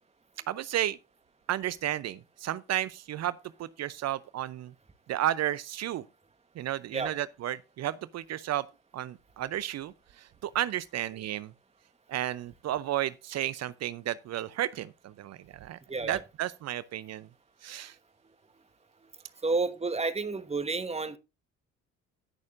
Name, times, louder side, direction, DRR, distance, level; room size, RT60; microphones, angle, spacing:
voice 1, 0.5-1.0 1.5-4.7 5.1-6.0 6.6-8.6 8.9-11.5 12.1-17.3 17.6-17.9, right 12 dB, 50° right, 0.6 m, -33 dB
voice 2, 15.9-16.2 19.4-21.2, right 3 dB, 20° right, 1.2 m, -30 dB
18.5 x 6.4 x 2.5 m
hypercardioid pair, 60°, 35 cm